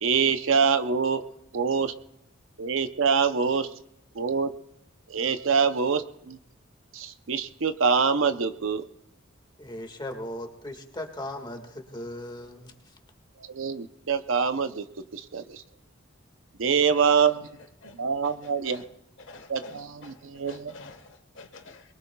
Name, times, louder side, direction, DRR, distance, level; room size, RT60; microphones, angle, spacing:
voice 1, 0.0-1.2 1.5-1.9 2.6-3.7 4.1-4.5 5.1-6.4 6.9-8.8 13.4-14.9 15.1-15.6 16.6-17.5 18.0-18.8 19.5-20.7, right 6 dB, 70° right, 0.7 m, -25 dB
voice 2, 9.6-12.7, left 1 dB, 20° left, 1.7 m, -37 dB
voice 3, 19.2-20.1 20.4-21.1 21.4-21.8, left 3 dB, 65° left, 1.4 m, -46 dB
23.0 x 22.0 x 2.3 m
head